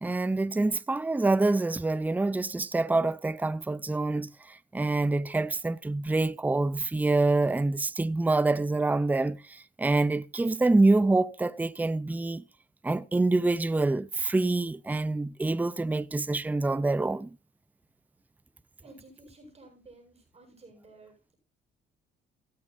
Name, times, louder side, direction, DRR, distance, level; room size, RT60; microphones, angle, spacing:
voice 1, 0.0-12.4 12.8-17.3, right 2 dB, 10° right, 0.5 m, -26 dB
voice 2, 18.8-21.4, right 2 dB, 30° right, 7.9 m, -53 dB
16.0 x 13.5 x 2.6 m
cardioid pair, 90°, 20 cm